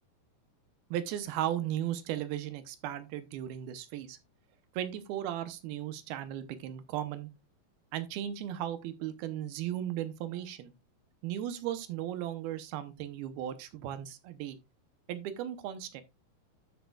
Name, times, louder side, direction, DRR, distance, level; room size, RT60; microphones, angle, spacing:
voice 1, 0.9-4.2 4.7-7.3 7.9-10.7 11.2-14.6 15.1-16.0, right 11 dB, 75° right, 2.6 m, -36 dB
12.5 x 6.6 x 2.3 m
omnidirectional pair, 4.6 m